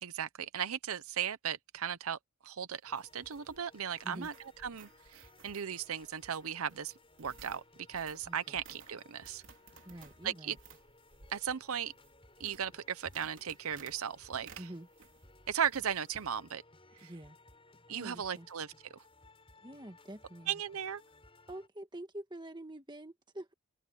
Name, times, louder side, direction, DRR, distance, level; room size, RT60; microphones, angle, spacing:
voice 1, 0.0-4.3 4.6-6.9 7.2-7.6 7.9-9.4 10.2-10.6 11.3-11.9 12.4-14.7 15.5-16.6 17.0-17.1 17.9-19.0 20.5-21.0, right 8 dB, 80° right, 0.7 m, -37 dB
sound 1, 2.7-15.3 15.6-16.3, right 4 dB, 60° right, 3.6 m, -58 dB
sound 2, 2.8-21.7, left 2 dB, 25° left, 6.6 m, -61 dB
voice 2, 8.2-8.6 9.8-10.6 14.6-14.9 17.0-17.4 17.9-18.5 19.6-20.6 21.5-23.5, right 1 dB, 20° right, 1.7 m, -46 dB
head